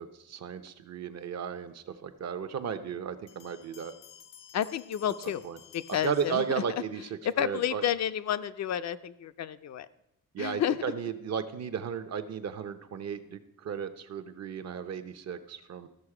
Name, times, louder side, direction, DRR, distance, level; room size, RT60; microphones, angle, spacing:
voice 1, 0.0-3.9 5.4-5.6 5.9-7.1 7.4-7.8 10.3-15.9, right 7 dB, 55° right, 10 dB, 0.7 m, -35 dB
sound 1, 3.3-7.0, left 9 dB, 80° left, 0.8 m, -54 dB
voice 2, 4.5-5.4 5.7-6.4 7.2-9.9 10.4-10.8, left 10 dB, 60° left, 12 dB, 0.4 m, -30 dB
14.0 x 6.5 x 4.8 m, 0.83 s
wide cardioid pair, 175°, 31 cm